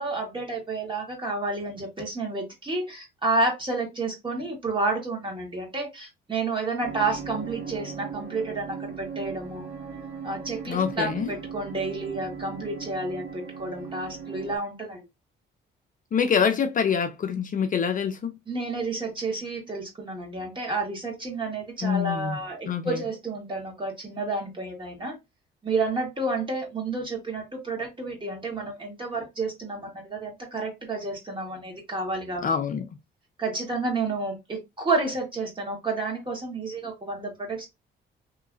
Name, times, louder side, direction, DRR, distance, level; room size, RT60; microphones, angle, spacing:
voice 1, 0.0-9.7 10.2-15.0 18.5-25.2 25.6-32.5 33.4-37.7, right 3 dB, 25° right, 1.6 m, -30 dB
sound 1, 6.8-14.6, right 6 dB, 85° right, 1.2 m, -38 dB
voice 2, 10.7-11.3 16.1-18.3 21.8-22.4 22.7-23.0 32.4-32.9, left 7 dB, 45° left, 0.5 m, -25 dB
3.0 x 2.8 x 2.4 m
cardioid pair, 90°, 20 cm